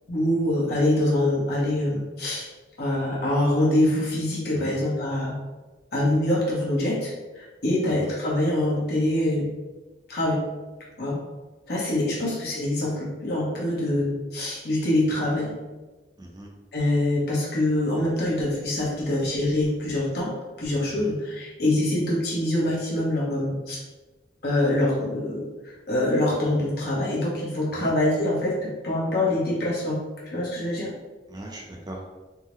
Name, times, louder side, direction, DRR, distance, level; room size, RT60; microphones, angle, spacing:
voice 1, 0.1-2.5 2.8-5.4 5.9-9.5 10.1-10.4 11.0-11.2 11.7-15.5 16.7-23.8 24.4-25.5 25.9-30.9, left 1 dB, 65° left, -5 dB, 1.0 m, -25 dB
voice 2, 16.2-16.5 20.8-21.1 27.7-27.9 31.3-32.0, right 1 dB, 25° right, -1 dB, 0.5 m, -40 dB
3.6 x 2.1 x 3.0 m, 1.2 s
head